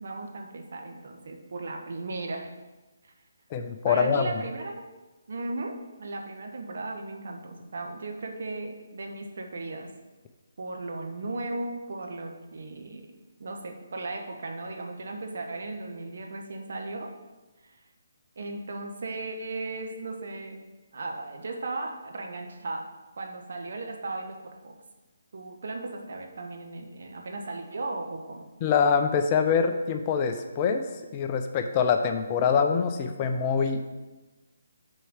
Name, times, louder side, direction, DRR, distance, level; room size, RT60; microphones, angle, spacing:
voice 1, 0.0-2.5 3.0-3.1 3.9-4.9 5.3-9.9 10.6-13.1 13.4-17.1 17.6-17.8 18.3-20.6 20.9-22.9 23.2-24.7 25.3-28.5 32.1-32.2, right 2 dB, 60° right, 3 dB, 1.3 m, -36 dB
voice 2, 3.5-4.3 28.6-30.8 31.1-33.8, left 6 dB, 30° left, 7 dB, 0.6 m, -24 dB
6.2 x 4.6 x 6.5 m, 1.2 s
figure-of-eight pair, 150°, 0 cm